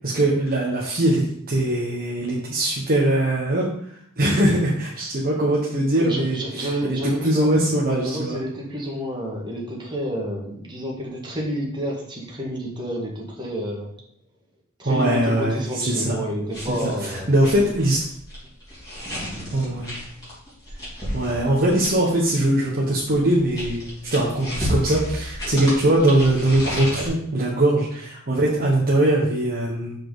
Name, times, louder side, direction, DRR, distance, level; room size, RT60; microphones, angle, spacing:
voice 1, 0.0-3.7 4.2-8.4 14.8-16.2 16.6-18.0 19.5-20.0 21.1-23.8 24.1-29.9, right 1 dB, 45° right, -5 dB, 1.2 m, -21 dB
voice 2, 6.0-13.9 14.8-17.3 25.4-25.7, equal, 20° right, -2 dB, 1.7 m, -30 dB
sound 1, 16.5-22.3 23.1-27.1, equal, 20° left, 3.2 m, -32 dB
6.1 x 4.7 x 4.9 m, 0.67 s
head